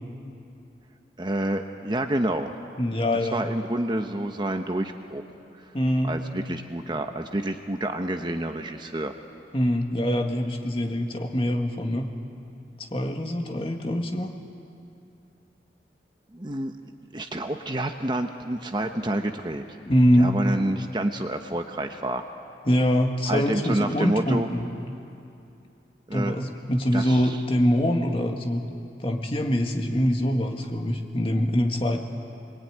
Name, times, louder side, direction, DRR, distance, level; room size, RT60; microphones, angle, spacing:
voice 1, 1.2-2.5 3.2-5.2 5.6-5.7 6.0-9.1 16.3-16.8 17.1-19.8 20.2-22.2 23.3-24.5 26.1-26.4 26.9-27.4, right 1 dB, 25° right, 5 dB, 0.9 m, -28 dB
voice 2, 2.8-3.4 5.7-6.1 9.5-12.1 12.8-14.3 19.9-20.3 22.7-24.7 26.1-28.6 29.0-32.0, equal, 30° left, 2 dB, 1.9 m, -24 dB
25.5 x 21.5 x 9.4 m, 2.6 s
head